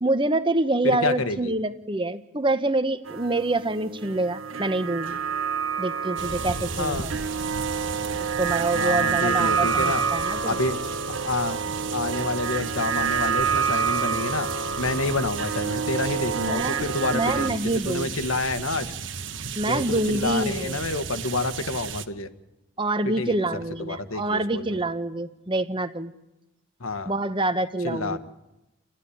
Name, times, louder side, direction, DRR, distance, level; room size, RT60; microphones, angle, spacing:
voice 1, 0.0-5.2 5.8-7.1 8.4-10.6 16.3-16.8 17.1-18.1 19.6-20.8 22.8-26.1 27.1-28.2, right 2 dB, 25° right, 11 dB, 1.0 m, -26 dB
voice 2, 0.8-1.5 6.8-7.1 8.7-10.0 10.5-10.8 11.1-11.6 11.9-14.5 14.8-17.6 17.8-18.9 19.6-22.3 23.0-23.3 23.8-24.8 26.8-27.1 27.8-28.2, left 2 dB, 90° left, 10 dB, 1.5 m, -28 dB
sound 1, 3.1-17.5, right 6 dB, 80° right, 1.4 m, -28 dB
sound 2, 6.2-22.1, right 6 dB, 65° right, 1.2 m, -35 dB
28.5 x 15.0 x 10.0 m, 1.0 s
head